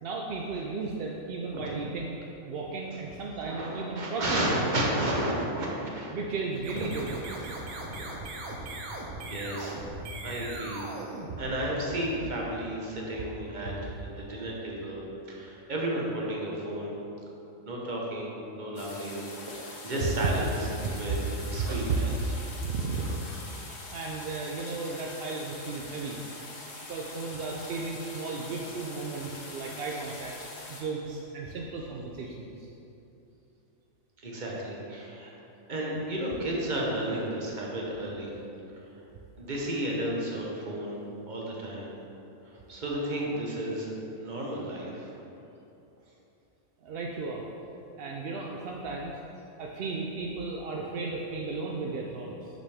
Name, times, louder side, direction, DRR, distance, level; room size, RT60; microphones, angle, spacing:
voice 1, 0.0-4.7 6.1-7.5 13.8-13.9 20.0-20.3 20.8-22.3 22.6-23.3 23.9-26.2 26.9-30.3 30.7-32.7 46.8-47.4 48.0-49.1 49.6-52.5, right 4 dB, 65° right, -1 dB, 0.6 m, -34 dB
voice 2, 3.5-6.1 9.3-11.0 11.3-15.0 15.3-16.9 17.6-20.5 20.9-21.2 21.4-22.1 34.2-35.3 35.7-38.3 39.4-41.0 41.3-41.9 42.4-43.9 44.2-45.1, right 1 dB, 35° right, -3 dB, 1.1 m, -33 dB
sound 1, 6.5-12.0, right 1 dB, 85° right, 1.3 m, -39 dB
sound 2, 18.8-30.8, left 2 dB, 50° left, 1.1 m, -43 dB
6.5 x 6.0 x 3.5 m, 2.9 s
omnidirectional pair, 1.5 m